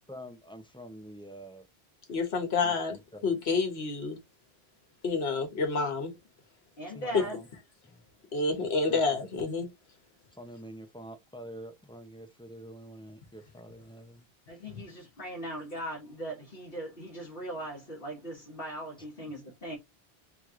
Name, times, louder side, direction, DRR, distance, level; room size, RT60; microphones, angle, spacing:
voice 1, 0.0-1.6 2.6-3.3 6.9-7.5 8.9-9.2 10.4-14.2, equal, 5° left, 0.6 m, -46 dB
voice 2, 2.1-3.0 3.2-4.2 5.0-6.1 7.1-7.2 8.3-9.7, left 4 dB, 75° left, 1.4 m, -28 dB
voice 3, 6.8-7.4 14.5-19.8, right 1 dB, 60° left, 1.5 m, -39 dB
3.4 x 3.1 x 3.7 m
omnidirectional pair, 1.1 m